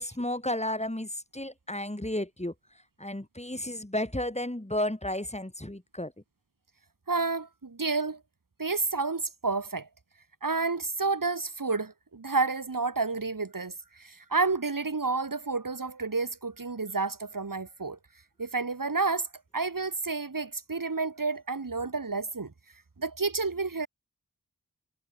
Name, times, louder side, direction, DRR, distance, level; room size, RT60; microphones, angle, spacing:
voice 1, 0.0-2.5 3.0-6.1, left 1 dB, 20° left, 5.0 m, -32 dB
voice 2, 7.1-8.2 8.6-9.9 10.4-18.0 18.4-19.3 19.5-22.5 23.0-23.9, right 3 dB, 65° right, 2.3 m, -30 dB
wide cardioid pair, 45°, 35 cm